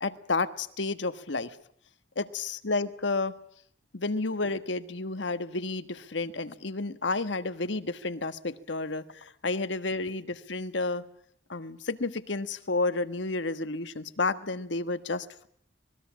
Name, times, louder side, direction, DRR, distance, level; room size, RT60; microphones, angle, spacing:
voice 1, 0.0-1.6 2.2-3.3 3.9-11.0 11.5-15.5, left 3 dB, 80° left, 12 dB, 1.4 m, -31 dB
25.5 x 20.0 x 7.3 m, 0.68 s
head